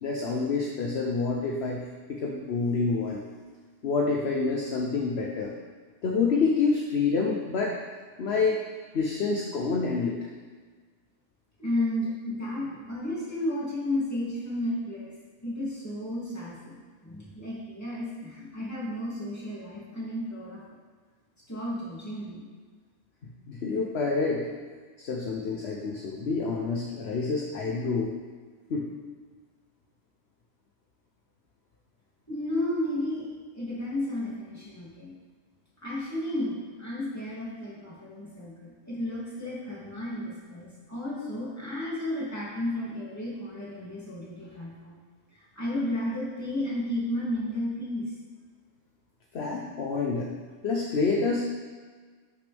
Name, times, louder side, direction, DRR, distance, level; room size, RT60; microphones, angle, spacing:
voice 1, 0.0-1.8 2.1-3.2 3.8-5.5 6.0-7.8 8.2-8.6 8.9-10.2 23.5-24.5 25.0-28.1 28.7-28.9 49.3-50.3 50.6-51.4, left 4 dB, 50° left, 0 dB, 1.0 m, -27 dB
voice 2, 11.6-15.1 15.4-20.8 21.5-22.5 32.3-33.3 33.5-35.1 35.8-44.9 45.3-48.1, left 1 dB, 10° left, -8 dB, 2.6 m, -33 dB
11.0 x 6.5 x 3.4 m, 1.5 s
omnidirectional pair, 1.5 m